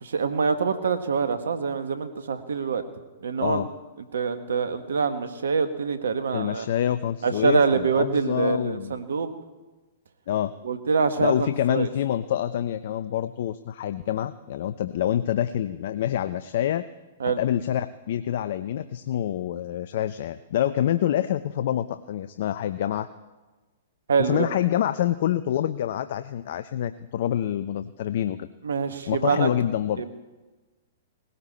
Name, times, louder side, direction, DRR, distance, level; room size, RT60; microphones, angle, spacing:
voice 1, 0.0-2.8 3.2-3.7 4.1-6.6 7.2-9.3 10.6-11.9 17.2-17.4 24.1-24.4 28.6-29.5 30.0-30.1, right 5 dB, 75° right, 10 dB, 1.4 m, -25 dB
voice 2, 6.3-9.0 10.3-10.5 11.2-16.8 17.3-23.1 24.2-28.5 29.1-30.0, left 11 dB, 60° left, 12 dB, 0.5 m, -26 dB
19.5 x 16.5 x 4.2 m, 1.2 s
hypercardioid pair, 115°, 0 cm